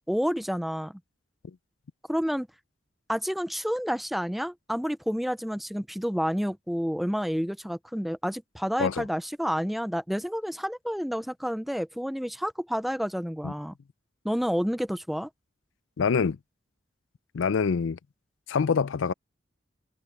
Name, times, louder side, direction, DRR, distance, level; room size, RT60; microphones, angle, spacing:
voice 1, 0.1-1.0 2.1-2.5 3.1-13.7 14.2-15.3, equal, ahead, 0.4 m, -29 dB
voice 2, 16.0-16.4 17.3-18.0 18.5-19.1, left 5 dB, 80° left, 0.4 m, -25 dB
head